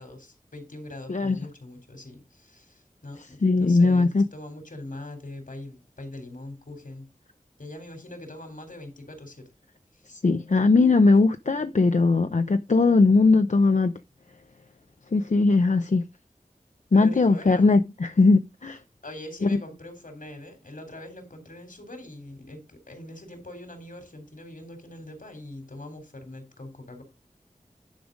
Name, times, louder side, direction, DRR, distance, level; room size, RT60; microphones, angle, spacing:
voice 1, 0.0-7.1 7.6-9.5 9.9-10.0 16.9-17.7 19.0-27.0, left 1 dB, 80° left, 3.5 m, -42 dB
voice 2, 3.4-4.2 10.1-13.9 15.1-16.1 16.9-18.8 19.4-19.6, left 3 dB, 60° left, 0.6 m, -20 dB
10.5 x 5.0 x 5.1 m
wide cardioid pair, 50°, 14 cm